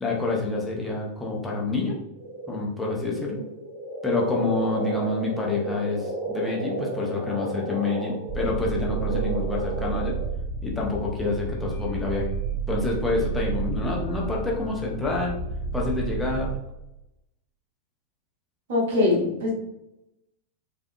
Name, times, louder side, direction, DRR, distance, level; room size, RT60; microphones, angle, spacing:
voice 1, 0.0-2.0 2.5-3.4 4.0-10.2 10.6-12.3 12.7-15.3 15.7-16.5, left 3 dB, 5° left, -3 dB, 0.9 m, -27 dB
sound 1, 2.2-10.3, right 2 dB, 85° right, 1.2 m, -33 dB
sound 2, 8.3-16.6, right 5 dB, 85° left, 0.9 m, -31 dB
voice 2, 18.7-19.5, left 3 dB, 55° right, -4 dB, 1.4 m, -22 dB
4.9 x 2.7 x 2.3 m, 0.86 s
figure-of-eight pair, 90°, 0 cm